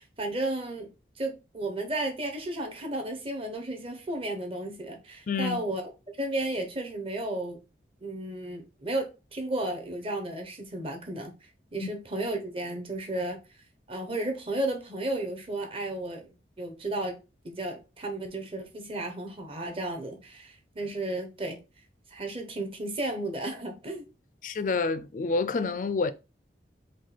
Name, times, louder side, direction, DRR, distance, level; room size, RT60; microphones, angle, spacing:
voice 1, 0.0-5.8 6.2-7.6 8.0-11.3 11.7-13.4 13.9-17.2 17.4-21.6 22.1-24.1, right 1 dB, 30° right, 1.1 m, -33 dB
voice 2, 5.3-5.6 11.8-11.9 24.4-26.1, left 4 dB, 45° left, 0.4 m, -28 dB
4.8 x 2.4 x 4.3 m
head